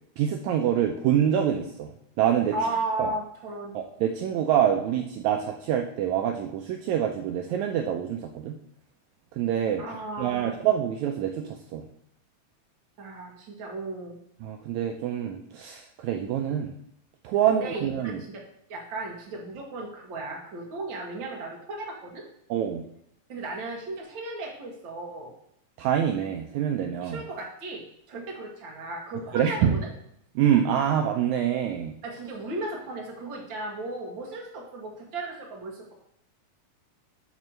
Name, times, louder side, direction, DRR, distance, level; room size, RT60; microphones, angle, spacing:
voice 1, 0.2-1.9 2.2-2.6 3.0-3.1 3.7-8.6 9.3-9.8 10.2-11.9 14.4-16.7 17.2-18.2 22.5-22.8 25.8-27.2 29.3-29.8 30.4-32.0, right 9 dB, 80° right, 3 dB, 1.8 m, -26 dB
voice 2, 2.5-3.8 9.8-10.6 13.0-14.2 17.5-18.4 18.7-22.2 23.3-25.3 27.0-29.9 32.0-35.9, right 2 dB, 45° right, -1 dB, 2.0 m, -35 dB
9.1 x 3.2 x 6.4 m, 0.74 s
omnidirectional pair, 3.6 m